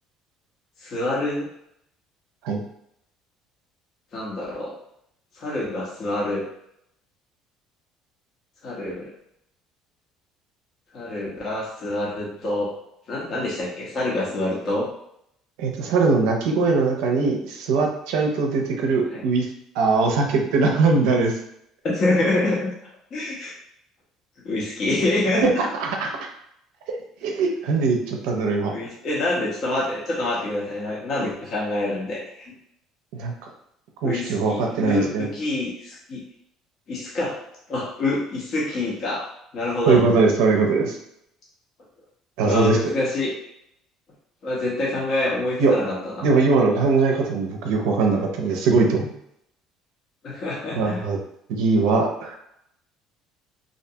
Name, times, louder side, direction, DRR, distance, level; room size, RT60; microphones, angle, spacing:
voice 1, 0.8-1.5 4.1-4.7 5.3-6.4 8.6-9.1 10.9-12.7 13.1-14.9 19.1-19.2 21.8-22.7 23.1-23.5 24.4-25.4 28.7-32.5 34.0-36.2 36.9-37.3 37.7-39.3 39.5-40.0 42.4-43.3 44.4-46.4 50.2-51.0, left 2 dB, 50° left, -5 dB, 0.7 m, -26 dB
voice 2, 15.6-19.5 19.8-21.4 25.4-26.1 27.2-28.7 33.2-33.3 34.0-35.3 39.9-41.0 42.4-42.8 45.6-45.7 46.2-49.1 50.8-51.2 51.5-52.4, right 4 dB, 85° right, 1 dB, 0.4 m, -21 dB
2.5 x 2.2 x 2.7 m, 0.76 s
cardioid pair, 115°, 0 cm